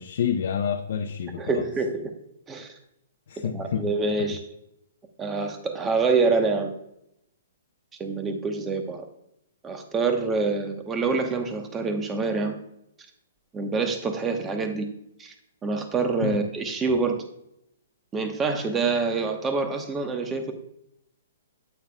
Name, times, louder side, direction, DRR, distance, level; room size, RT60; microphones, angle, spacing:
voice 1, 0.0-1.6 3.3-3.8 4.2-4.3 16.2-16.4, left 8 dB, 60° left, 3 dB, 0.6 m, -28 dB
voice 2, 1.4-2.1 2.5-2.7 3.5-4.4 5.2-6.7 8.0-9.1 9.6-12.5 13.5-14.9 15.2-15.3 15.6-17.2 18.1-20.5, right 4 dB, 15° right, 5 dB, 1.1 m, -26 dB
9.1 x 8.6 x 2.3 m, 0.78 s
hypercardioid pair, 150°, 0 cm